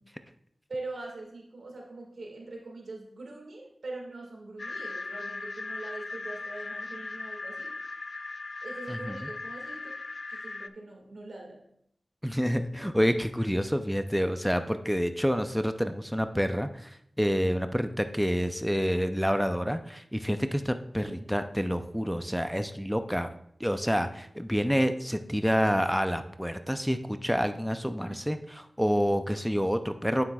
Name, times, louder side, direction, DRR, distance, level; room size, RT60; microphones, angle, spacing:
voice 1, 0.7-7.7 8.6-9.9 10.3-11.6 21.0-21.3 28.1-28.2, right 2 dB, 85° right, 0 dB, 1.9 m, -42 dB
sound 1, 4.6-10.7, left 3 dB, 65° left, 0.3 m, -38 dB
voice 2, 12.2-23.3 23.6-30.2, equal, ahead, 9 dB, 0.5 m, -28 dB
8.8 x 7.4 x 2.3 m, 0.70 s
cardioid pair, 45°, 0 cm